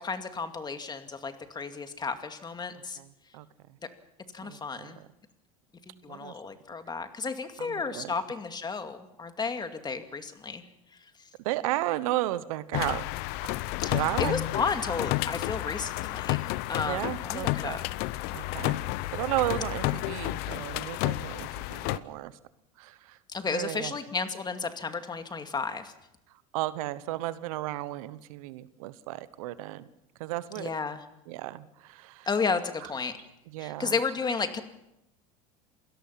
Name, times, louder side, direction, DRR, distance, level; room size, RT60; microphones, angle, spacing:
voice 1, 0.0-3.0 4.3-5.0 5.9-10.6 13.8-17.8 23.3-25.9 30.5-31.0 32.3-33.1 33.6-34.6, left 4 dB, 25° left, 7 dB, 2.3 m, -33 dB
voice 2, 4.4-5.0 6.1-6.3 7.6-8.1 11.4-13.0 13.5-13.6 13.9-14.3 16.8-17.8 18.3-18.8 19.1-22.3 22.8-23.2 23.4-24.0 26.5-29.9 30.2-30.7 31.3-32.3 32.8-32.9 33.5-33.9, right 16 dB, 75° right, 16 dB, 1.1 m, -33 dB
sound 1, 12.7-22.0, left 19 dB, 65° left, 0.8 m, -31 dB
27.5 x 17.5 x 5.9 m, 0.86 s
hypercardioid pair, 90°, 18 cm